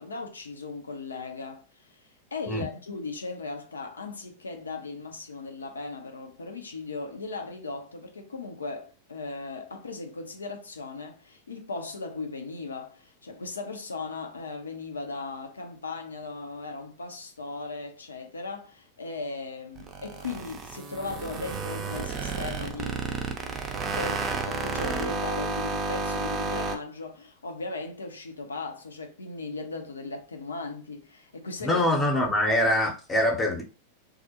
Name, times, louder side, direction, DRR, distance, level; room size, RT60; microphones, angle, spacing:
voice 1, 0.0-1.9 2.3-31.8, left 3 dB, 85° left, 0.5 m, -37 dB
sound 1, 19.7-26.8, right 3 dB, 30° right, 0.4 m, -31 dB
voice 2, 31.6-33.6, left 1 dB, 15° left, 0.7 m, -24 dB
2.3 x 2.0 x 2.8 m
hypercardioid pair, 100°, 0 cm